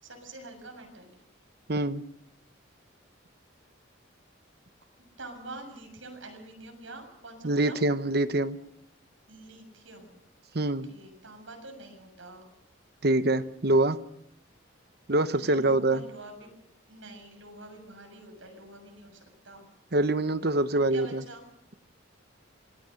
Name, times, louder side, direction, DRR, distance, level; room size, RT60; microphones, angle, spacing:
voice 1, 0.0-1.2 5.2-7.8 9.3-10.2 10.6-12.5 15.3-16.5 16.9-19.7 20.9-21.4, right 2 dB, 75° right, 4 dB, 6.9 m, -46 dB
voice 2, 1.7-2.0 7.4-8.6 10.5-10.9 13.0-14.0 15.1-16.0 19.9-21.2, right 2 dB, 50° right, 12 dB, 1.0 m, -25 dB
27.0 x 20.0 x 6.5 m, 0.78 s
head